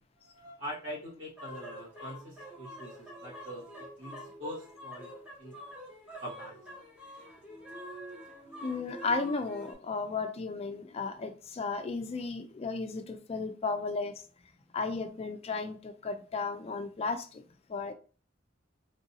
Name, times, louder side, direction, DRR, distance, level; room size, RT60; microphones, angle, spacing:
voice 1, 0.2-5.1 5.4-5.5 6.2-6.7, equal, 70° right, -4 dB, 1.5 m, -43 dB
sound 1, 1.4-9.7, equal, 5° right, 1.0 m, -46 dB
voice 2, 8.6-14.1 14.7-17.4 17.7-17.9, left 4 dB, 30° left, 7 dB, 0.3 m, -34 dB
3.7 x 2.6 x 2.7 m, 0.37 s
head